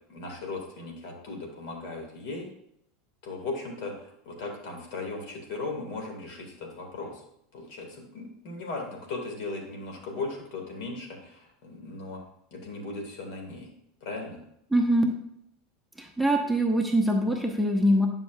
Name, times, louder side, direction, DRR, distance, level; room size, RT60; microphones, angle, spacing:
voice 1, 0.1-2.5 3.2-7.2 7.5-12.2 12.5-13.7 14.0-14.4, left 3 dB, 55° left, 1 dB, 2.0 m, -37 dB
voice 2, 14.7-15.1 16.0-18.1, equal, ahead, 1 dB, 0.9 m, -23 dB
10.0 x 5.6 x 2.4 m, 0.74 s
figure-of-eight pair, 80°, 0 cm